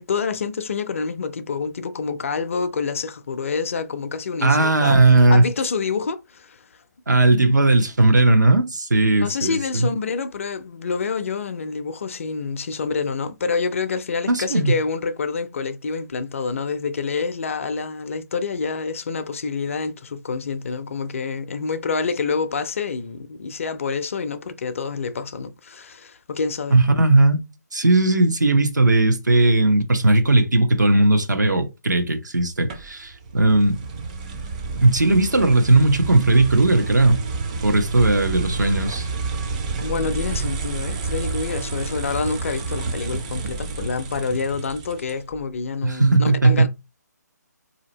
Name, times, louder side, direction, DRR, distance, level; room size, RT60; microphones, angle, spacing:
voice 1, 0.0-5.0 5.3-6.7 9.1-26.8 39.8-46.7, left 5 dB, 45° left, 0.5 m, -27 dB
voice 2, 4.4-5.5 7.1-9.9 14.3-14.7 26.7-27.4 27.7-33.9 34.7-37.2 37.6-39.1 45.8-46.7, right 2 dB, 80° right, 0.9 m, -17 dB
sound 1, 32.7-45.4, right 4 dB, 25° right, 0.5 m, -29 dB
4.2 x 2.8 x 2.7 m
figure-of-eight pair, 150°, 10 cm